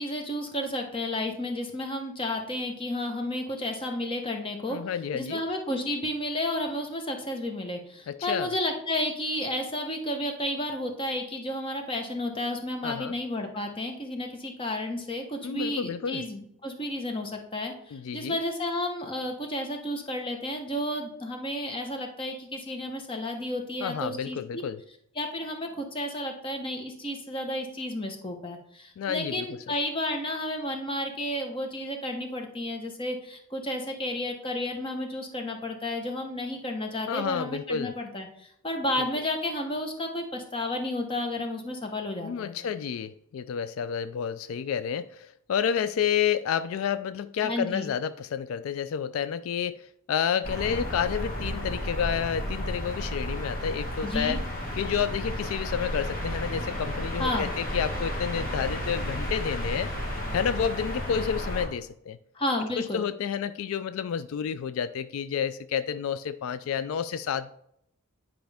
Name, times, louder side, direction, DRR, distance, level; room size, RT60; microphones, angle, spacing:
voice 1, 0.0-4.8 5.1-24.6 25.1-42.5 47.4-47.9 54.0-54.4 57.2-57.5 62.3-63.1, left 1 dB, 25° left, 4 dB, 1.0 m, -32 dB
voice 2, 4.7-5.4 8.1-8.5 12.8-13.2 15.4-16.2 17.9-18.4 23.8-24.8 29.0-29.5 37.1-37.9 39.0-39.1 42.2-54.4 54.8-59.9 60.3-62.2 62.8-67.5, left 8 dB, 75° left, 14 dB, 0.3 m, -30 dB
sound 1, 50.4-61.7, equal, 40° left, 1.6 m, -32 dB
10.0 x 5.1 x 3.5 m, 0.73 s
head